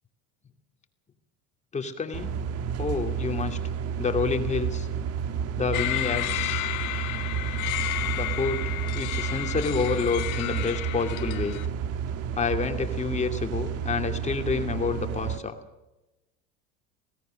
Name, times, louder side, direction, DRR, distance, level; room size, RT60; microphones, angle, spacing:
voice 1, 1.7-2.3 2.8-3.6 4.0-4.9 5.6-6.7 8.1-11.6 12.3-15.6, left 5 dB, 20° left, 5 dB, 2.6 m, -29 dB
sound 1, 2.1-15.4, right 7 dB, 45° right, 1.6 m, -31 dB
sound 2, 5.7-11.7, left 17 dB, 65° left, 1.9 m, -32 dB
26.0 x 17.5 x 6.5 m, 1.0 s
supercardioid pair, 115°, 33 cm